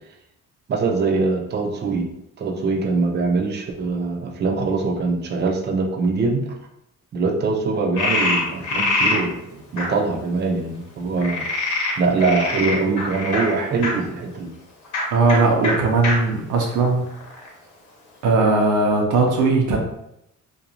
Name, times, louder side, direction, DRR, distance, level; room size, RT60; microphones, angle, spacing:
voice 1, 0.7-2.1 2.4-6.4 7.1-9.4 9.7-11.5 12.0-14.5, right 3 dB, 35° right, 1 dB, 0.5 m, -23 dB
Frog, 8.0-9.2 9.8-9.9 11.2-13.9 14.8-15.0 15.3-15.4 15.6-15.7 16.0-16.1 16.7-17.5, left 2 dB, 75° left, 0.9 m, -23 dB
voice 2, 15.1-17.0 18.2-19.8, right 3 dB, 90° right, 0 dB, 0.7 m, -18 dB
2.5 x 2.2 x 2.8 m, 0.80 s
cardioid pair, 90°, 30 cm